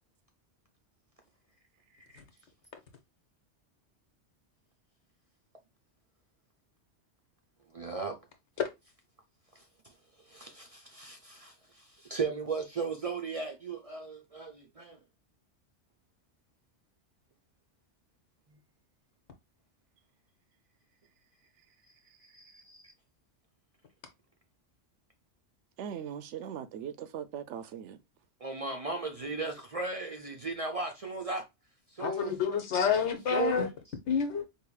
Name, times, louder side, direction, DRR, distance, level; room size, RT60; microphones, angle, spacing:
voice 1, 7.7-8.2 9.5-15.0 18.5-18.6 22.2-22.9 28.4-31.5 31.9-32.4 33.3-33.7, right 4 dB, 45° right, 0.4 m, -37 dB
voice 2, 25.8-28.0, right 9 dB, 80° right, 0.9 m, -40 dB
voice 3, 32.0-33.7 34.1-34.4, left 7 dB, 75° left, 1.1 m, -28 dB
4.8 x 2.7 x 2.3 m
omnidirectional pair, 1.2 m